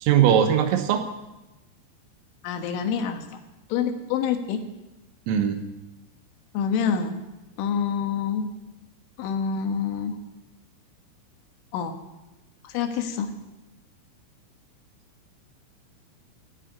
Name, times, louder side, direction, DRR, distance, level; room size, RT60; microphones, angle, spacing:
voice 1, 0.0-1.1 5.3-5.6, right 9 dB, 85° right, 7 dB, 3.9 m, -20 dB
voice 2, 2.4-3.2 3.7-4.6 6.5-7.2 7.6-8.5 9.2-10.2 11.7-11.9 12.6-13.3, left 7 dB, 75° left, 6 dB, 3.6 m, -26 dB
16.5 x 8.0 x 9.4 m, 1.0 s
omnidirectional pair, 6.0 m